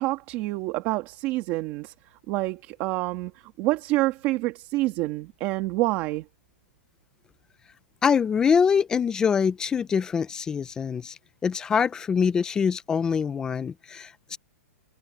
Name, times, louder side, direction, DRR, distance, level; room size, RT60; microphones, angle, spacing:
voice 1, 0.0-1.9 2.3-3.3 3.6-6.2, right 19 dB, 25° right, 1.6 m, -27 dB
voice 2, 8.0-11.1 11.4-14.4, left 6 dB, 10° left, 0.5 m, -24 dB
hypercardioid pair, 170°, 8 cm